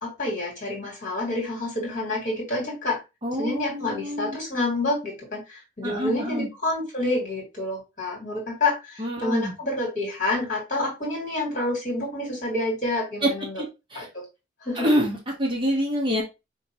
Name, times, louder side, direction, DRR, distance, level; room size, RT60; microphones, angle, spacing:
voice 1, 0.0-3.0 3.4-13.6 13.9-14.2 14.6-14.9, left 2 dB, 40° left, -1 dB, 2.2 m, -28 dB
voice 2, 3.2-4.4 5.8-6.5 9.0-9.5 13.2-13.3 13.6-13.7 13.9-14.1 14.7-16.2, equal, 25° right, -1 dB, 1.0 m, -26 dB
4.4 x 3.2 x 2.8 m, 0.25 s
head